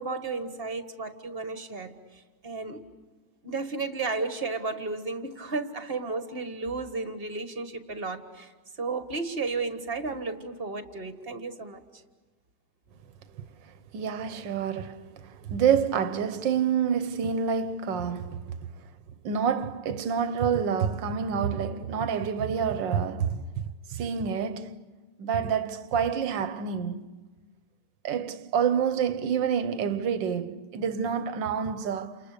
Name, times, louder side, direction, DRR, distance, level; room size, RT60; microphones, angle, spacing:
voice 1, 0.0-2.9 3.4-12.0, right 3 dB, 35° right, 1.7 m, -33 dB
voice 2, 13.4-18.6 19.2-23.6 23.9-24.8 25.2-27.1 28.0-32.2, right 7 dB, 85° right, 1.7 m, -28 dB
29.5 x 28.5 x 6.7 m
omnidirectional pair, 1.9 m